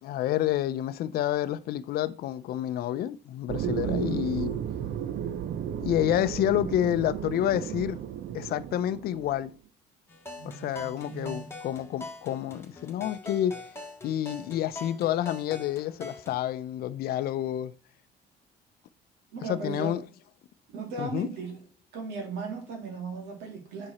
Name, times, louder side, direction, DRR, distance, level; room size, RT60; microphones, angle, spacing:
voice 1, 0.0-4.6 5.8-8.0 8.3-9.5 10.4-13.6 14.0-17.7 19.4-20.0 21.0-21.3, left 12 dB, 65° left, 0.5 m, -29 dB
sound 1, 3.5-9.5, right 9 dB, 65° right, 0.6 m, -34 dB
voice 2, 3.8-4.2 10.4-11.5 19.3-20.0 20.7-21.6 21.9-23.9, right 4 dB, 85° right, 2.5 m, -37 dB
sound 2, 10.1-16.4, left 2 dB, 15° left, 1.6 m, -43 dB
7.5 x 4.8 x 4.2 m
cardioid pair, 110°, 17 cm